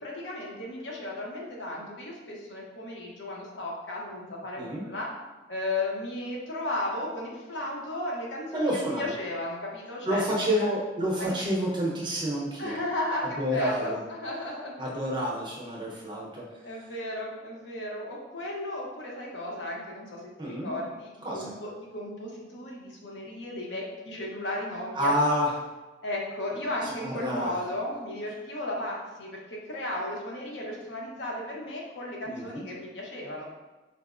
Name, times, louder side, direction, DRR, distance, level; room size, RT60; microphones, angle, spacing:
voice 1, 0.0-5.1 5.5-10.7 11.2-11.3 12.6-14.9 16.6-25.2 26.0-33.4, left 1 dB, 90° left, -2 dB, 0.7 m, -35 dB
voice 2, 4.6-4.9 8.5-9.1 10.0-12.8 13.2-14.0 14.8-16.5 20.4-20.7 21.2-21.5 24.9-25.5 26.8-27.6 32.3-32.6, equal, 25° right, -4 dB, 0.7 m, -29 dB
4.7 x 2.0 x 2.4 m, 1.2 s
head